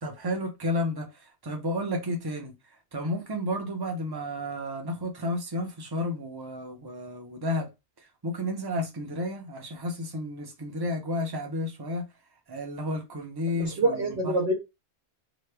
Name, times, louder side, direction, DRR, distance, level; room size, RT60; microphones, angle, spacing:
voice 1, 0.0-2.5 2.9-7.7 8.2-12.0 12.5-14.3, left 1 dB, 25° right, 0.7 m, -32 dB
voice 2, 13.5-14.5, right 2 dB, 75° right, 1.1 m, -26 dB
3.0 x 2.3 x 3.3 m
omnidirectional pair, 1.1 m